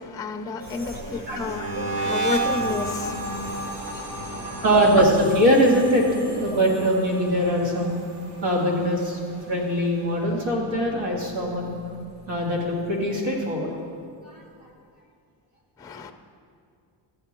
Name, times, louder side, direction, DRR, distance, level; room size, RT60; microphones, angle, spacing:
voice 1, 0.0-4.6 15.8-16.1, left 4 dB, 10° left, 0.4 m, -32 dB
sound 1, 0.6-9.8 10.1-10.5 10.8-12.4, right 2 dB, 55° right, 1.7 m, -33 dB
voice 2, 0.6-2.1 4.6-7.9 8.4-9.2 9.5-11.7 12.3-13.7 14.2-14.4, equal, 80° right, 2.6 m, -22 dB
14.0 x 8.1 x 4.4 m
cardioid pair, 135°, 46 cm